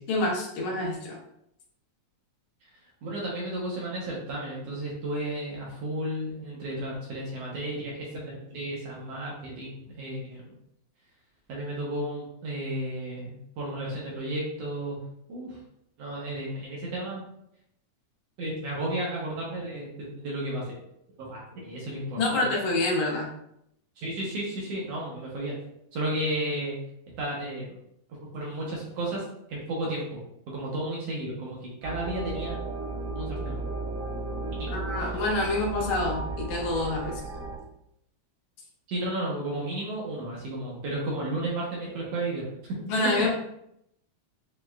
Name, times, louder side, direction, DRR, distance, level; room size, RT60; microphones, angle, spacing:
voice 1, 0.1-1.2 22.2-23.3 34.7-37.2 42.9-43.3, left 2 dB, 75° left, -3 dB, 2.1 m, -27 dB
voice 2, 3.0-10.4 11.5-15.0 15.3-15.6 16.0-17.2 18.4-20.8 21.2-22.4 24.0-25.6 25.9-26.7 27.2-27.8 28.3-29.2 29.5-30.0 30.5-32.6 33.1-33.6 34.6-34.8 38.9-42.8 43.2-43.3, right 1 dB, 70° right, -4 dB, 1.7 m, -33 dB
sound 1, 31.8-37.6, right 3 dB, 90° right, 2.2 m, -34 dB
6.1 x 2.2 x 2.3 m, 0.76 s
omnidirectional pair, 3.4 m